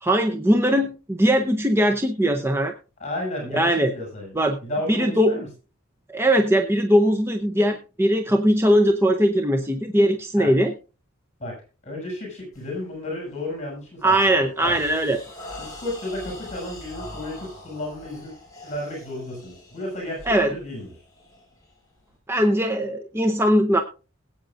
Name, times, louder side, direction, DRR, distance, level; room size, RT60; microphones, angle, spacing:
voice 1, 0.0-2.7 3.5-3.9 4.3-4.6 4.9-5.4 6.1-10.7 14.0-15.2 20.3-20.5 22.3-23.8, equal, 10° right, 5 dB, 0.7 m, -20 dB
voice 2, 3.0-5.5 10.4-10.5 11.4-11.6 11.8-14.2 14.6-14.8 15.6-18.3 18.6-20.9, left 1 dB, 30° left, 0 dB, 6.9 m, -33 dB
sound 1, 12.5-12.8 13.3-13.6 14.0-22.1, left 1 dB, 15° left, 6.1 m, -43 dB
20.0 x 8.7 x 2.5 m, 0.33 s
head